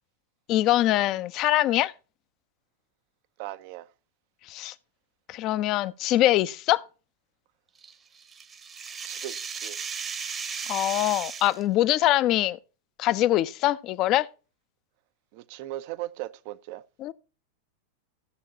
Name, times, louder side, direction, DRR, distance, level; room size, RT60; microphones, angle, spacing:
voice 1, 0.5-1.9 4.5-4.7 5.3-6.8 10.7-12.6 13.0-14.3 17.0-17.1, left 15 dB, 35° left, 0.6 m, -23 dB
voice 2, 3.4-3.9 9.0-9.8 15.3-16.8, right 15 dB, 45° right, 0.6 m, -38 dB
sound 1, 7.8-11.6, right 6 dB, 20° right, 1.0 m, -36 dB
14.0 x 7.2 x 2.8 m
figure-of-eight pair, 90°, 0 cm